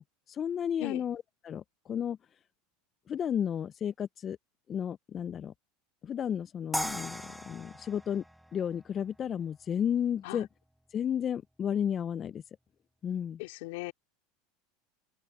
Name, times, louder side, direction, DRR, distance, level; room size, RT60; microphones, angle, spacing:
voice 1, 0.0-2.2 3.1-4.4 4.7-5.5 6.0-8.2 8.5-10.5 10.9-12.4 13.0-13.4, left 8 dB, 35° left, 0.6 m, -33 dB
sound 1, 6.7-9.8, equal, ahead, 0.9 m, -39 dB
voice 2, 13.4-13.9, left 21 dB, 70° left, 3.1 m, -38 dB
open air
hypercardioid pair, 95°, 0 cm